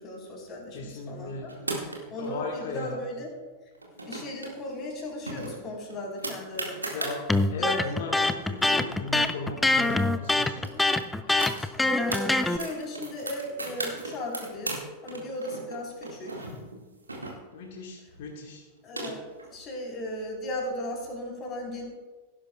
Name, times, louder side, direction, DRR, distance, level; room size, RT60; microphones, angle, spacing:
voice 1, 0.0-1.5 1.8-3.3 3.9-7.1 7.6-7.9 10.5-10.8 11.3-14.8 15.0-16.3 18.8-21.8, left 1 dB, 30° left, -1 dB, 4.1 m, -36 dB
voice 2, 0.7-1.4 2.2-3.0 6.9-7.2 7.5-10.6 17.5-18.6, left 3 dB, 55° left, 0 dB, 1.7 m, -37 dB
sound 1, 1.5-2.3 3.8-4.5 4.8-4.9 5.3-7.2 7.8-7.9 8.1-9.9 10.2-10.3 10.6-12.2 12.6-14.8 15.1-17.7 18.5-19.5, right 2 dB, 80° right, 2.0 m, -37 dB
Electric guitar, 7.3-12.6, left 2 dB, 5° left, 0.6 m, -24 dB
17.0 x 10.5 x 2.4 m, 1.3 s
figure-of-eight pair, 90°, 0 cm